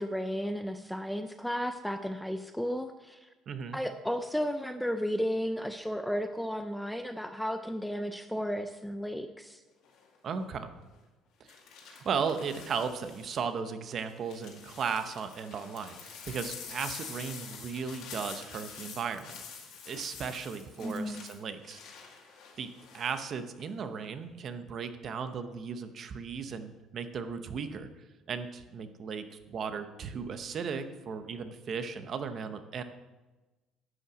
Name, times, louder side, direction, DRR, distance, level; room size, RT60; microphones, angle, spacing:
voice 1, 0.0-3.2 3.7-9.6 20.8-21.2, equal, ahead, 8 dB, 0.4 m, -33 dB
voice 2, 3.5-3.8 10.2-10.7 12.0-21.8 22.6-22.7 22.9-27.9 28.3-32.8, right 6 dB, 35° right, 9 dB, 0.8 m, -36 dB
sound 1, 9.8-10.2 11.5-13.4 13.9-23.2 23.6-24.0, left 6 dB, 60° left, 2.1 m, -47 dB
11.0 x 5.6 x 7.4 m, 1.1 s
cardioid pair, 170°, 0 cm